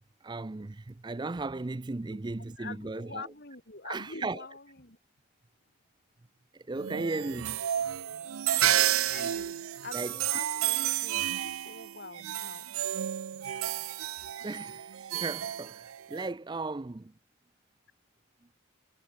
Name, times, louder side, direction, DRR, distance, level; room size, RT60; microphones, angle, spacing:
voice 1, 0.2-3.3 3.8-4.5 6.5-7.6 9.9-10.1 14.4-17.1, right 3 dB, 20° right, 0.4 m, -36 dB
voice 2, 2.6-5.0 8.5-12.7, left 3 dB, 50° left, 3.2 m, -44 dB
sound 1, 6.8-16.3, right 12 dB, 80° right, 0.4 m, -31 dB
head